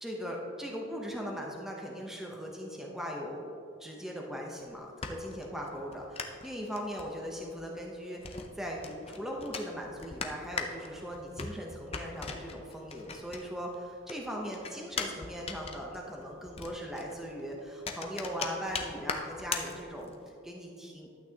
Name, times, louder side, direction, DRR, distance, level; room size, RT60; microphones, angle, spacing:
voice 1, 0.0-21.2, equal, ahead, -1 dB, 0.8 m, -39 dB
sound 1, 4.6-13.7 14.0-20.3, left 5 dB, 25° left, 0.5 m, -40 dB
12.0 x 8.4 x 2.9 m, 2.5 s
head